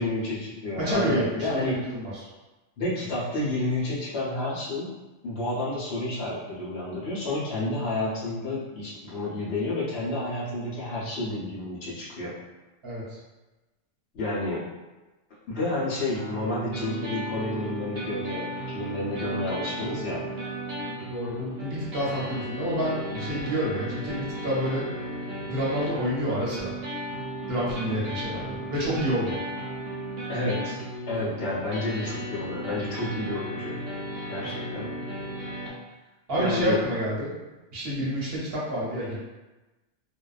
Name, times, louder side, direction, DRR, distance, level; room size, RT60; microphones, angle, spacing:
voice 1, 0.0-1.8 2.8-4.9 5.2-12.3 14.1-14.6 15.5-20.2 23.1-23.2 23.5-23.6 30.3-30.8 31.1-33.8 34.3-34.9 36.3-36.8, left 2 dB, 60° left, -8 dB, 1.0 m, -30 dB
voice 2, 0.8-2.3 12.8-13.2 21.1-24.8 25.5-26.7 27.5-29.4 36.3-37.3 37.7-39.2, equal, 60° right, -6 dB, 0.9 m, -28 dB
sound 1, 16.2-35.7, right 1 dB, 85° right, 1.0 m, -35 dB
2.6 x 2.2 x 2.3 m, 1.1 s
omnidirectional pair, 1.3 m